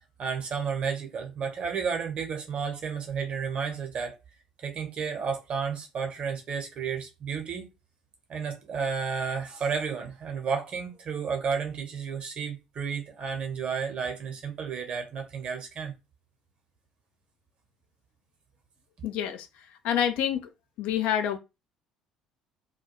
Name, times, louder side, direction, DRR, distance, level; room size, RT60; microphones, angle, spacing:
voice 1, 0.2-4.2 4.6-7.7 8.3-15.9, right 6 dB, 45° right, 0.9 m, -32 dB
voice 2, 19.0-19.5 19.8-20.5 20.8-21.4, left 10 dB, 60° left, 0.4 m, -27 dB
2.3 x 2.3 x 3.0 m
figure-of-eight pair, 55°, 3 cm